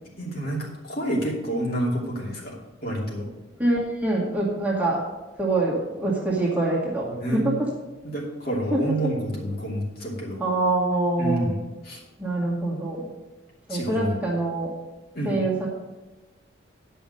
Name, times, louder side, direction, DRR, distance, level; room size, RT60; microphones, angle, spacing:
voice 1, 0.2-2.6 2.8-3.3 7.1-7.4 8.0-10.4 11.2-11.6 11.8-12.0 13.7-14.2 15.1-15.4, right 1 dB, 50° left, -3 dB, 2.7 m, -28 dB
voice 2, 3.6-5.0 5.4-7.5 8.7-8.8 10.4-11.5 12.2-13.1 13.7-14.7 15.2-15.7, right 2 dB, 10° right, -5 dB, 1.9 m, -25 dB
10.5 x 5.6 x 6.5 m, 1.1 s
head